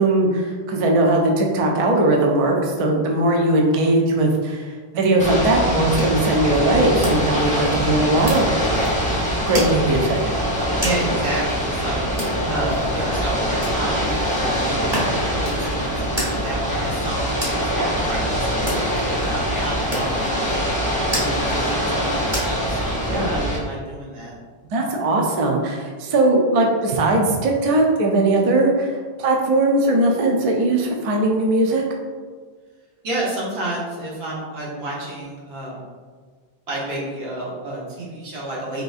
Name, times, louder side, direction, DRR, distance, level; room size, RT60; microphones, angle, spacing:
voice 1, 0.0-4.7 4.9-8.5 9.5-10.2 24.7-28.9 29.2-31.8, right 2 dB, 55° right, 0 dB, 0.4 m, -19 dB
Ocean / Boat Water vehicle, 5.2-23.6, equal, 10° left, 0.7 m, -23 dB
sound 1, 5.8-23.2, equal, 25° right, 1.0 m, -33 dB
voice 2, 10.8-24.3 33.0-35.8 36.7-38.8, right 1 dB, 85° right, -6 dB, 1.2 m, -30 dB
3.8 x 2.5 x 2.4 m, 1.5 s
omnidirectional pair, 1.1 m